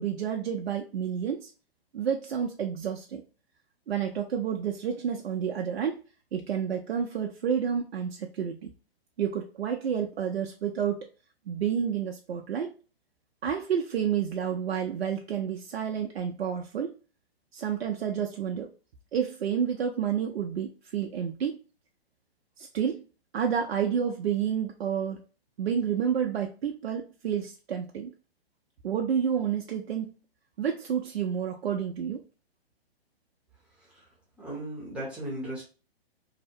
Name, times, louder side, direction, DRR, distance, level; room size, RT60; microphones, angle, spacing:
voice 1, 0.0-1.5 1.9-3.2 3.9-6.0 6.3-8.7 9.2-11.1 11.5-12.7 13.4-16.9 17.5-18.7 19.1-21.6 22.6-23.0 23.3-25.2 25.6-28.1 28.8-30.1 30.6-32.2, right 8 dB, 75° right, 2 dB, 0.5 m, -30 dB
voice 2, 34.4-35.6, right 1 dB, 5° right, -4 dB, 0.6 m, -36 dB
2.7 x 2.0 x 2.5 m, 0.36 s
hypercardioid pair, 130°, 31 cm